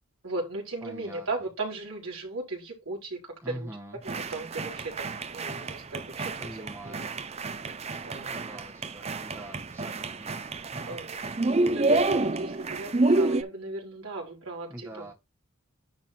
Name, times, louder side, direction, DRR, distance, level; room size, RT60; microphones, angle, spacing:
voice 1, 0.2-3.2 3.4-3.7 4.0-7.2 8.0-8.3 10.9-11.2 11.4-15.1, right 2 dB, 75° right, 4.1 m, -36 dB
voice 2, 0.8-1.3 3.4-4.0 6.4-7.1 8.3-10.3 14.7-15.1, right 1 dB, 10° right, 1.4 m, -43 dB
sound 1, 4.1-13.4, right 2 dB, 30° right, 0.5 m, -29 dB
10.5 x 3.9 x 4.3 m
head